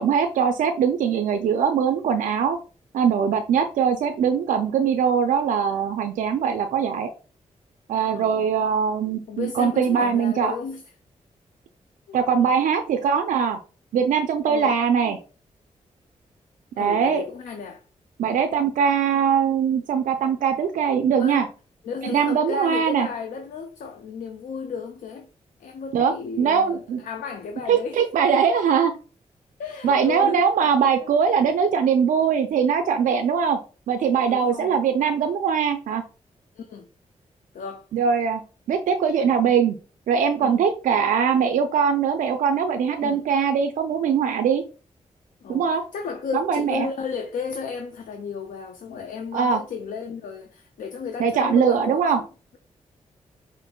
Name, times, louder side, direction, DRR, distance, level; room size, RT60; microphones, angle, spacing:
voice 1, 0.0-2.6 2.9-7.1 7.9-10.5 12.1-13.6 13.9-15.2 16.8-17.2 18.2-21.5 22.1-23.1 25.9-27.0 27.7-28.9 29.8-33.6 33.9-36.0 37.9-38.4 38.7-39.8 40.1-44.6 45.5-45.8 46.3-46.9 49.3-49.6 51.2-52.2, right 7 dB, 85° right, 0.4 m, -21 dB
voice 2, 8.1-8.5 9.3-10.8 12.1-12.2 13.0-13.1 14.5-14.8 16.8-17.8 21.2-21.4 21.8-25.3 25.6-28.0 29.6-30.4 31.0-31.1 34.3-34.8 36.6-36.9 37.5-37.9 40.4-40.7 43.0-43.2 45.4-52.3, left 5 dB, 85° left, 0.4 m, -33 dB
5.1 x 2.5 x 2.2 m
cardioid pair, 65°, 13 cm